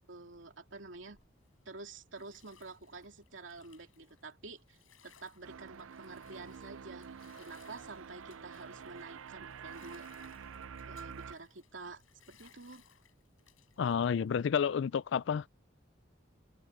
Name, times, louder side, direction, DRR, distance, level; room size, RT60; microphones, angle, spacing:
voice 1, 0.1-1.2 1.6-4.8 5.0-10.1 10.9-12.0 12.3-12.8, right 3 dB, 70° right, 2.7 m, -49 dB
Bathtub (filling or washing), 1.1-14.4, left 8 dB, 90° left, 7.0 m, -65 dB
sound 1, 5.4-11.3, right 6 dB, 90° right, 0.5 m, -48 dB
voice 2, 13.8-15.5, left 7 dB, 65° left, 0.3 m, -30 dB
head